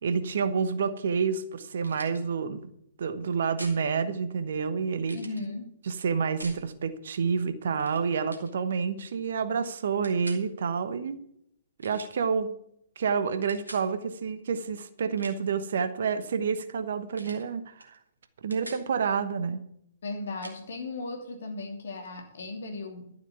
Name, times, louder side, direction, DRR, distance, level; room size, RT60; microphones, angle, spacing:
voice 1, 0.0-2.6 3.0-5.2 5.9-11.2 11.8-12.5 13.0-18.0 18.4-19.6, right 6 dB, 55° right, 11 dB, 1.1 m, -29 dB
sound 1, 1.8-2.2 3.6-3.8 5.0-5.4 6.4-6.6 7.7-8.0 8.3-8.5 10.0-10.4 11.8-12.2 13.5-13.9 15.0-15.5 17.1-17.5 17.8-18.0 18.2-18.9 20.4-20.6, right 1 dB, 80° right, 2.1 m, -45 dB
voice 2, 5.1-5.6 20.0-23.1, left 3 dB, 60° left, 4 dB, 2.7 m, -36 dB
12.0 x 7.4 x 7.0 m, 0.73 s
figure-of-eight pair, 120°, 0 cm